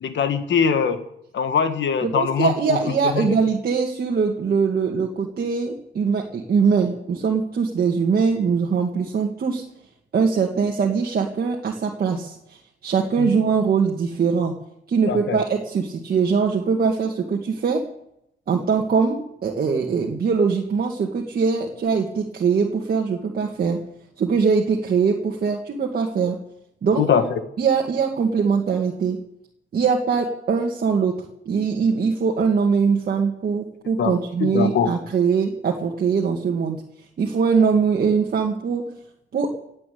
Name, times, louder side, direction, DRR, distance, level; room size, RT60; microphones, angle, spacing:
voice 1, 0.0-1.0 1.3-2.8 3.0-3.4 13.2-13.3 15.1-15.4 27.0-27.2 34.0-34.1 34.4-34.9, left 7 dB, 65° left, 9 dB, 1.7 m, -22 dB
voice 2, 2.0-9.6 10.1-14.5 14.9-17.8 18.5-23.8 24.2-26.4 26.8-27.0 27.6-29.2 29.7-31.2 31.5-36.8 37.2-38.9 39.3-39.5, right 5 dB, 50° right, 0 dB, 2.1 m, -22 dB
18.0 x 8.8 x 8.6 m, 0.77 s
cardioid pair, 135°, 20 cm